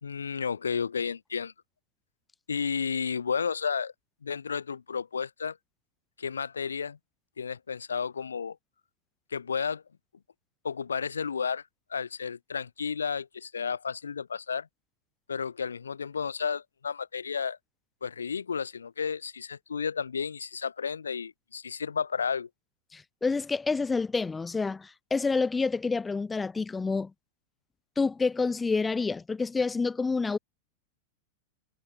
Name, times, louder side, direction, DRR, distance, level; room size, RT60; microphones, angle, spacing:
voice 1, 0.0-1.5 2.5-3.9 4.2-5.6 6.2-7.0 7.4-8.6 9.3-9.8 10.6-11.6 11.9-14.7 15.3-17.6 18.0-22.5, left 6 dB, 70° left, 3.5 m, -32 dB
voice 2, 22.9-27.1 28.0-30.4, left 4 dB, 10° left, 3.4 m, -28 dB
figure-of-eight pair, 90°, 0 cm